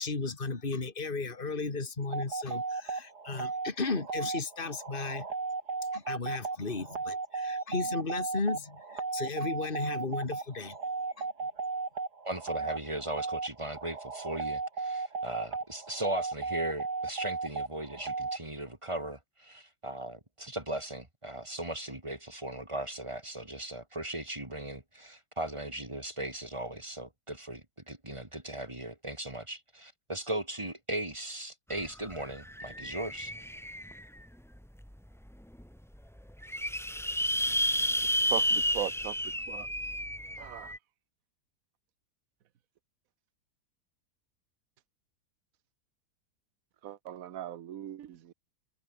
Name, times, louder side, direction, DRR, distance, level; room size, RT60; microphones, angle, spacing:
voice 1, 0.0-5.3 5.9-10.8 11.2-11.3, left 3 dB, 35° left, 2.6 m, -35 dB
sound 1, 2.1-18.4, right 4 dB, 90° right, 3.7 m, -35 dB
voice 2, 12.2-33.3, right 1 dB, 20° right, 3.0 m, -38 dB
sound 2, 31.7-31.8 32.1-34.2 34.8-34.9 35.3-35.4 35.5-35.6 36.2-40.8, equal, ahead, 1.4 m, -31 dB
voice 3, 38.2-39.2 39.5-39.7 40.4-40.7 46.8-48.3, right 11 dB, 65° right, 1.4 m, -38 dB
omnidirectional pair, 1.7 m